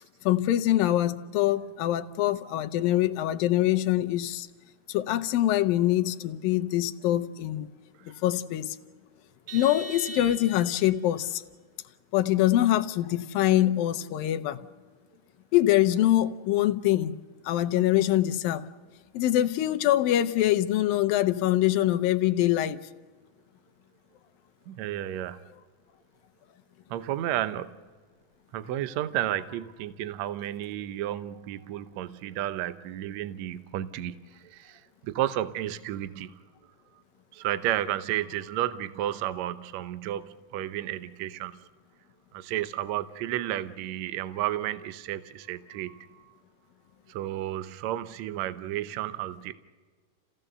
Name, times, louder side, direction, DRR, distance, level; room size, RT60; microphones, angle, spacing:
voice 1, 0.2-4.5 4.9-7.7 8.2-8.8 9.5-11.4 12.1-14.6 15.5-17.2 17.5-18.7 19.1-22.8, left 13 dB, 85° left, 9 dB, 2.6 m, -24 dB
Vehicle horn car horn honking, 9.5-10.9, right 1 dB, 45° right, 2.0 m, -40 dB
voice 2, 24.7-25.5 26.9-27.8 28.5-36.4 37.3-41.6 42.3-46.3 47.1-49.5, right 13 dB, 70° right, 12 dB, 1.8 m, -32 dB
29.0 x 16.5 x 6.7 m, 1.5 s
omnidirectional pair, 4.0 m